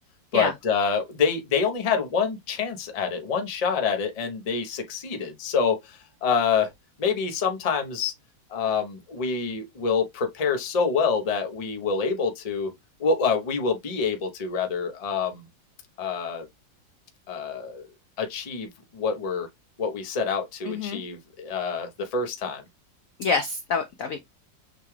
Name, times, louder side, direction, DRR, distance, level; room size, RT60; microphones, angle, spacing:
voice 1, 0.3-6.7 7.0-8.1 8.5-12.7 13.0-15.5 16.0-16.5 17.3-17.9 18.2-19.5 19.8-22.6, left 5 dB, 35° left, 0.6 m, -26 dB
voice 2, 20.6-21.0 23.2-24.2, left 5 dB, 70° left, 0.8 m, -26 dB
6.5 x 2.3 x 3.2 m
omnidirectional pair, 2.0 m